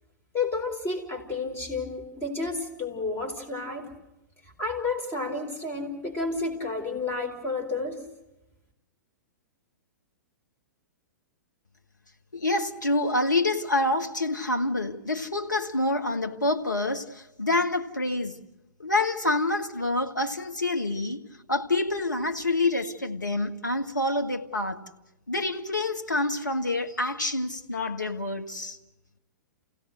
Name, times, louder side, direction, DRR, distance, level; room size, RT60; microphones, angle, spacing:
voice 1, 0.3-3.9 4.6-8.0, left 3 dB, 20° left, 4.2 m, -31 dB
voice 2, 12.3-18.4 18.8-24.8 25.3-28.8, left 2 dB, 85° left, 1.5 m, -27 dB
29.0 x 16.5 x 6.5 m
figure-of-eight pair, 110°, 10 cm